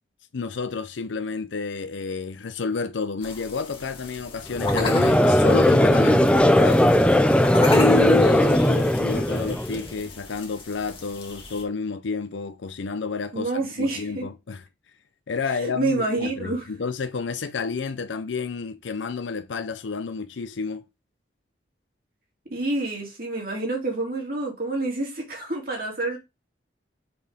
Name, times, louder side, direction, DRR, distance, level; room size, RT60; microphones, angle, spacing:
voice 1, 0.3-6.9 7.7-14.6 15.3-20.8, left 4 dB, 80° left, 0.5 m, -30 dB
sound 1, 3.2-11.6, left 3 dB, 30° left, 1.4 m, -38 dB
Conversation / Crowd, 4.6-9.9, left 1 dB, 5° left, 0.4 m, -18 dB
voice 2, 13.3-14.2 15.5-16.6 22.5-26.2, right 2 dB, 50° right, 2.8 m, -28 dB
5.3 x 4.4 x 5.2 m
head